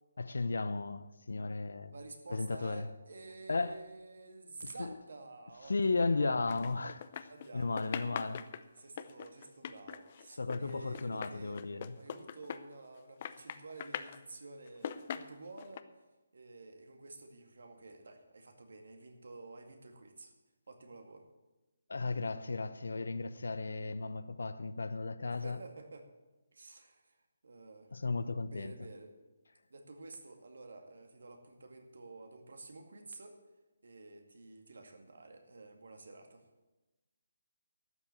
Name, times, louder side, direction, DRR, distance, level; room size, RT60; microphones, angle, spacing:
voice 1, 0.2-1.9 2.3-2.9 3.5-3.8 4.8-5.0 5.7-7.0 7.5-8.4 10.3-11.9 21.9-25.6 27.9-28.7, left 3 dB, 80° left, 0.8 m, -35 dB
voice 2, 1.9-6.5 7.3-8.4 8.8-11.6 12.0-15.9 16.3-20.3 20.7-21.3 25.3-26.1 26.5-27.2 27.4-27.9 28.5-29.1 29.7-33.4 33.8-36.4, right 3 dB, 75° right, 2.1 m, -51 dB
sound 1, 6.5-7.5 7.8-12.9 13.2-14.2 14.7-15.8, left 8 dB, 40° left, 0.6 m, -42 dB
12.5 x 7.3 x 8.6 m
figure-of-eight pair, 155°, 0 cm